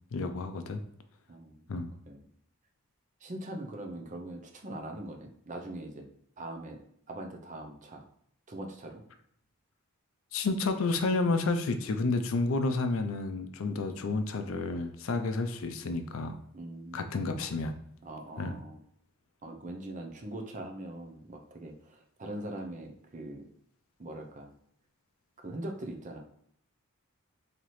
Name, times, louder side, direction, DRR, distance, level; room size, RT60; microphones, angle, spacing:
voice 1, 0.1-0.8 1.7-1.9 10.3-16.4 16.9-17.8 18.4-18.6, left 3 dB, 65° left, 9 dB, 0.4 m, -30 dB
voice 2, 1.3-1.6 2.1-2.2 3.2-6.1 6.4-6.8 7.1-8.0 8.5-9.0 13.6-13.8 16.5-17.1 18.0-18.8 19.4-23.4 24.0-24.5 25.4-26.2, right 1 dB, 35° right, 3 dB, 0.5 m, -41 dB
4.1 x 2.8 x 3.1 m, 0.69 s
head